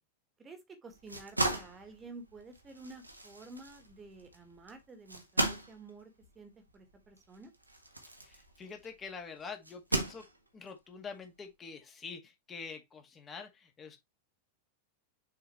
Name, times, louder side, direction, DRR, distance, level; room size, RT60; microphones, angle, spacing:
voice 1, 0.4-7.5, right 3 dB, 20° right, 1.7 m, -51 dB
sound 1, 0.9-9.0 9.6-10.7, right 2 dB, 85° right, 1.5 m, -37 dB
voice 2, 8.2-10.3 10.5-14.0, left 5 dB, 20° left, 1.7 m, -46 dB
6.7 x 4.7 x 3.0 m
figure-of-eight pair, 90°, 0 cm